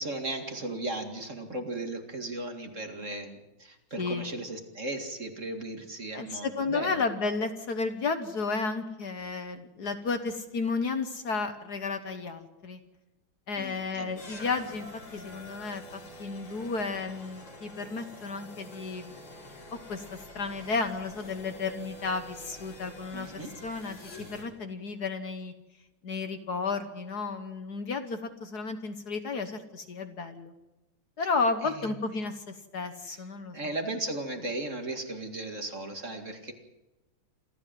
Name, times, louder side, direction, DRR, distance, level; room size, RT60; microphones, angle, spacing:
voice 1, 0.0-7.0 13.6-14.4 23.1-23.5 31.6-31.9 33.1-33.2 33.5-36.5, right 2 dB, 40° right, 4 dB, 2.4 m, -36 dB
voice 2, 4.0-4.3 6.1-12.8 13.5-14.9 15.1-19.1 19.7-25.5 26.0-30.5 31.2-33.7, left 4 dB, 55° left, 8 dB, 1.7 m, -33 dB
sound 1, 14.2-24.4, left 1 dB, 85° left, 5.2 m, -47 dB
27.0 x 14.0 x 7.7 m, 1.0 s
omnidirectional pair, 2.2 m